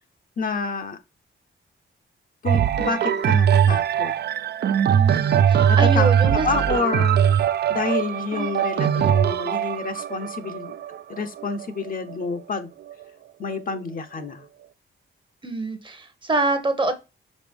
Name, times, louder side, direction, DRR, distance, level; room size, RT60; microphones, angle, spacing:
voice 1, 0.4-1.0 2.4-4.1 5.7-6.1 6.3-7.3 7.7-10.7 11.1-12.7 13.4-14.5, left 4 dB, 40° left, 0.7 m, -28 dB
sound 1, 2.5-12.2 12.9-13.0, right 9 dB, 55° right, 0.4 m, -21 dB
voice 2, 4.9-6.6 15.4-16.9, right 2 dB, 25° right, 0.9 m, -25 dB
5.2 x 3.6 x 5.1 m
wide cardioid pair, 175°, 21 cm